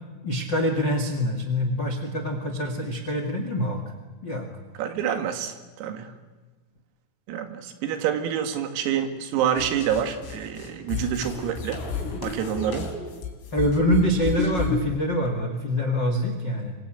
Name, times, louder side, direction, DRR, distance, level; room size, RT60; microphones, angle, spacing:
voice 1, 0.2-3.8 4.2-4.5 13.5-16.7, equal, 60° left, 6 dB, 1.1 m, -25 dB
voice 2, 4.8-6.1 7.3-11.8 12.2-12.9, right 9 dB, 85° right, 7 dB, 4.7 m, -27 dB
sound 1, 9.6-14.9, left 4 dB, 75° left, 6.6 m, -31 dB
25.5 x 25.0 x 9.0 m, 1.3 s
omnidirectional pair, 6.0 m